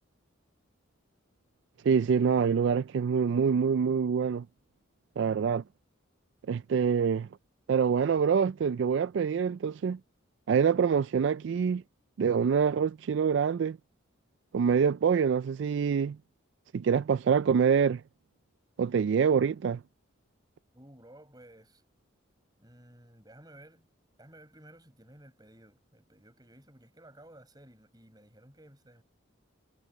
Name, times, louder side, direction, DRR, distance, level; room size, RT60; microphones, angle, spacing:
voice 1, 1.8-4.5 5.2-5.6 6.5-7.3 7.7-10.0 10.5-11.8 12.2-13.8 14.5-16.2 16.7-18.0 18.8-19.8, right 6 dB, 60° right, 0.3 m, -25 dB
voice 2, 20.7-21.8 22.6-23.9 24.2-29.0, right 1 dB, 20° right, 7.6 m, -55 dB
head